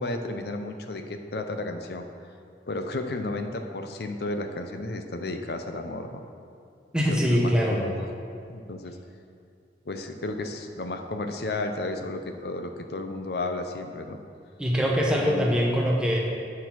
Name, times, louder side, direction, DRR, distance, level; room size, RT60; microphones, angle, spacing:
voice 1, 0.0-2.0 2.7-6.2 7.1-8.1 8.5-9.0 9.9-14.2 15.2-15.5, left 2 dB, 65° left, 6 dB, 0.6 m, -33 dB
voice 2, 6.9-7.8 14.6-16.2, equal, 5° right, -3 dB, 1.0 m, -23 dB
9.4 x 4.1 x 5.9 m, 2.4 s
head